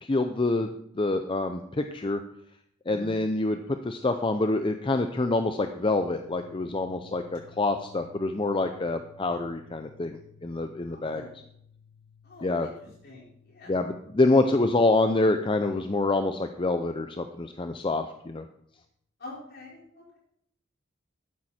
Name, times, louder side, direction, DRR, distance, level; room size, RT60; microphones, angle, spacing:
voice 1, 0.0-0.7 1.0-2.2 2.9-11.2 12.4-12.7 13.7-18.5, left 2 dB, 25° left, 7 dB, 0.5 m, -26 dB
voice 2, 2.9-3.2 10.8-11.3 12.2-12.7 13.0-13.8 19.2-20.2, left 2 dB, 55° left, -4 dB, 5.2 m, -45 dB
sound 1, 6.1-18.0, left 6 dB, 25° right, 1.3 m, -57 dB
12.0 x 9.4 x 4.3 m, 0.71 s
head